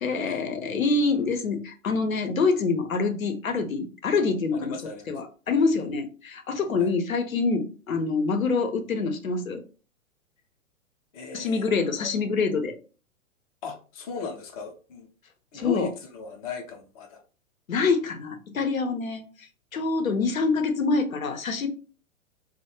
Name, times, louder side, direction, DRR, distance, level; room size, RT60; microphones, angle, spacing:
voice 1, 0.0-4.8 5.1-9.6 11.3-12.8 15.5-15.9 17.7-21.7, left 4 dB, 85° left, 7 dB, 0.6 m, -26 dB
voice 2, 4.5-5.1 5.7-5.9 6.8-6.9 11.1-12.1 13.6-15.1 15.5-17.2, left 5 dB, 30° left, 2 dB, 0.4 m, -37 dB
2.2 x 2.0 x 2.8 m, 0.36 s
figure-of-eight pair, 110°, 41 cm